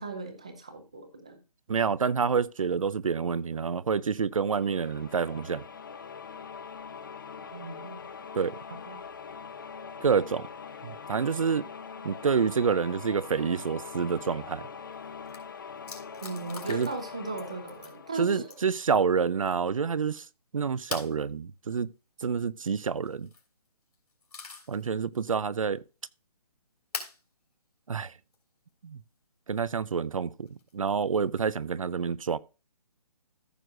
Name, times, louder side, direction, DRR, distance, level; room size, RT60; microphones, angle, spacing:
voice 1, 0.0-1.4 7.5-8.0 8.9-9.0 16.2-18.5, right 3 dB, 10° right, 0.5 m, -37 dB
voice 2, 1.7-5.6 8.3-8.5 10.0-10.5 10.8-11.7 12.0-14.7 16.7-16.9 18.2-20.2 20.5-21.9 22.2-23.3 24.7-25.8 27.9-28.1 28.8-29.0 29.5-30.5 30.7-32.4, right 6 dB, 60° right, 0.5 m, -28 dB
sound 1, 4.6-19.2, left 6 dB, 35° left, 0.7 m, -43 dB
sound 2, 14.9-15.0 15.3-15.4 15.9-17.1 17.4-18.0 18.5-18.8 20.9-21.2 23.1-23.5 23.9-24.8 25.3-25.4 26.9-27.2 28.3-28.4 30.5-30.9, left 4 dB, 75° left, 3.1 m, -41 dB
14.0 x 6.2 x 2.5 m
hypercardioid pair, 175°, 20 cm